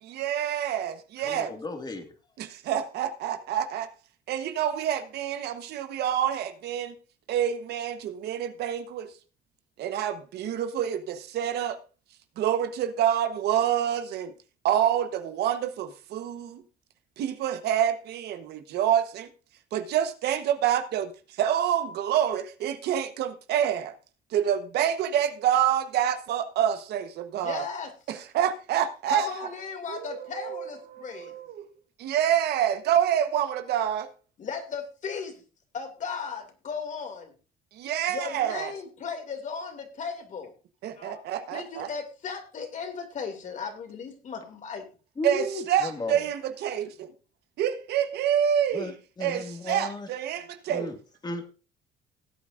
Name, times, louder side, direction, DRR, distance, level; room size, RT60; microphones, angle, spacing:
voice 1, 0.0-1.5 2.4-3.9 4.3-6.9 7.3-9.1 9.8-11.8 12.4-14.3 14.6-16.6 17.2-19.3 19.7-23.9 24.3-27.6 28.1-29.5 29.9-31.7 32.0-34.1 37.7-38.7 40.8-41.9 45.2-47.1 47.6-48.9 49.2-50.9, right 10 dB, 75° right, 1.2 m, -27 dB
voice 2, 1.2-2.1 45.2-46.2 48.7-50.1 50.7-51.0 51.2-51.5, left 2 dB, 25° left, 2.0 m, -35 dB
voice 3, 27.4-27.9 29.1-31.3 34.4-35.4 35.7-37.3 38.1-40.5 41.0-41.2 41.5-44.8, left 5 dB, 50° left, 2.5 m, -36 dB
18.0 x 8.6 x 2.6 m
cardioid pair, 110°, 17 cm